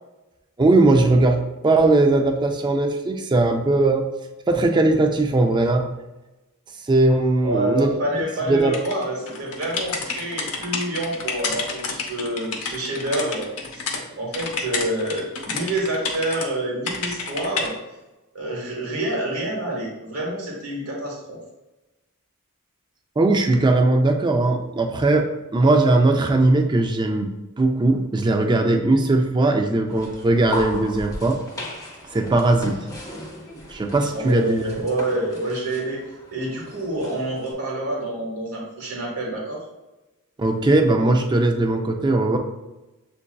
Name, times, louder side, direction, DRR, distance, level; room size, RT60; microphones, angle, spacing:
voice 1, 0.6-4.1 4.5-5.9 6.9-7.9 8.1-8.8 23.2-25.3 25.5-31.4 32.1-32.8 33.7-34.7 40.4-42.4, right 2 dB, 20° right, 3 dB, 0.4 m, -19 dB
voice 2, 7.4-17.8 18.3-21.4 34.1-36.0 36.3-39.6, right 1 dB, 70° right, -2 dB, 1.0 m, -27 dB
sound 1, 8.7-14.0 14.3-16.5 16.9-17.7, left 4 dB, 80° left, 0.7 m, -29 dB
sound 2, 29.9-37.5, left 1 dB, 15° left, 0.7 m, -37 dB
7.2 x 2.6 x 2.2 m, 1.0 s
head